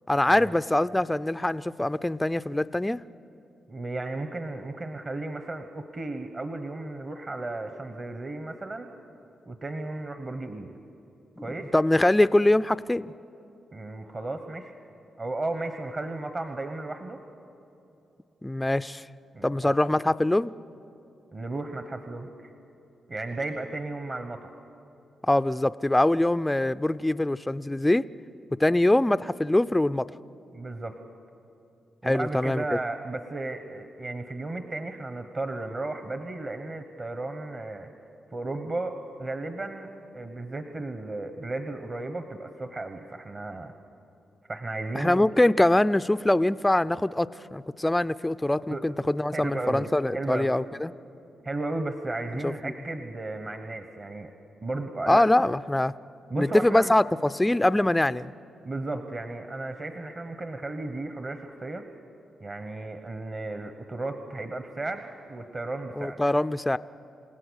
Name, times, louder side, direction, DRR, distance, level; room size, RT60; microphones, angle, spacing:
voice 1, 0.1-3.0 11.4-11.5 11.7-13.0 18.4-19.0 19.4-20.5 25.2-28.0 28.6-30.1 32.0-32.6 44.9-50.9 52.4-52.7 55.1-55.9 56.4-58.3 66.0-66.8, left 1 dB, 10° left, 14 dB, 0.4 m, -23 dB
voice 2, 3.7-8.9 9.5-10.8 11.4-11.7 13.7-14.7 15.2-17.2 19.3-19.8 21.3-22.5 23.1-24.5 30.5-31.0 32.0-37.9 38.3-43.7 44.5-45.3 48.7-48.8 49.3-49.9 50.1-50.6 51.4-54.3 54.6-55.2 56.3-56.9 58.6-61.8 62.4-66.2, right 2 dB, 35° right, 7 dB, 1.2 m, -34 dB
29.0 x 17.0 x 6.5 m, 2.9 s
cardioid pair, 90°, 0 cm